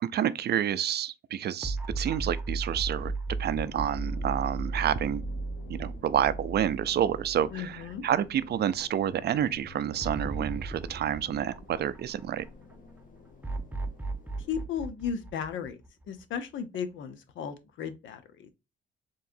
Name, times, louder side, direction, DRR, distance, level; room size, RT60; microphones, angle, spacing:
voice 1, 0.0-3.1 3.4-5.2 5.7-12.4, right 10 dB, 55° right, 0.4 m, -29 dB
sound 1, 1.6-8.0 8.3-8.4 10.0-12.5 13.4-16.2, right 3 dB, 10° right, 0.6 m, -35 dB
sound 2, 3.6-14.7, left 4 dB, 45° left, 1.4 m, -50 dB
voice 2, 7.5-8.0 14.5-15.8 16.1-18.5, left 7 dB, 75° left, 0.8 m, -35 dB
4.6 x 3.1 x 2.6 m
cardioid pair, 90°, 20 cm